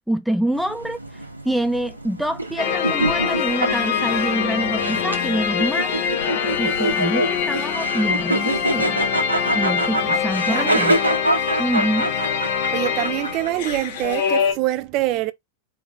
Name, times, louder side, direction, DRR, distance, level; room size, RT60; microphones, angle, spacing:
voice 1, 0.1-9.0 9.5-11.0 11.6-12.1, right 1 dB, ahead, 0.4 m, -26 dB
sound 1, 0.5-14.1, right 1 dB, 85° right, 1.2 m, -26 dB
sound 2, 2.6-14.5, left 7 dB, 50° left, 1.2 m, -24 dB
voice 2, 10.4-10.9 12.7-15.3, right 16 dB, 40° right, 0.6 m, -25 dB
4.2 x 3.1 x 3.6 m
figure-of-eight pair, 90°, 0 cm